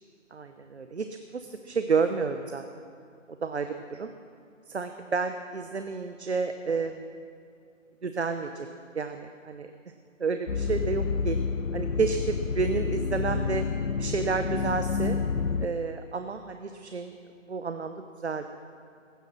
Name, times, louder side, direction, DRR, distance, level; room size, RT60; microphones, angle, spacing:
voice 1, 0.3-1.1 1.3-2.8 3.3-4.1 4.7-7.1 8.0-8.7 8.9-9.7 10.2-11.4 11.7-13.6 14.0-15.2 15.6-17.1 17.5-18.5, right 5 dB, 55° right, 8 dB, 0.9 m, -30 dB
sound 1, 10.5-15.7, left 5 dB, 80° left, 0.8 m, -29 dB
16.0 x 12.0 x 6.4 m, 2.3 s
figure-of-eight pair, 160°, 39 cm